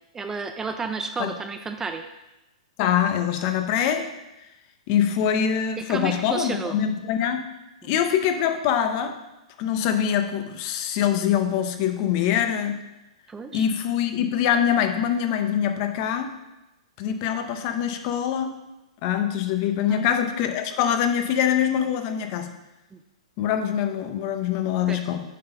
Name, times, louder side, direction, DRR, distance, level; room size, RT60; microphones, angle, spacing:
voice 1, 0.1-2.1 5.8-6.7 7.8-7.9 13.3-13.7 19.9-20.1 22.9-23.0 24.9-25.0, right 4 dB, 15° right, 7 dB, 0.4 m, -31 dB
voice 2, 2.8-4.1 4.9-7.4 7.8-9.1 9.6-12.8 13.5-16.3 17.0-18.5 19.0-22.5 23.4-25.2, left 9 dB, 45° left, 7 dB, 0.8 m, -24 dB
7.4 x 4.0 x 5.5 m, 0.96 s
hypercardioid pair, 135°, 4 cm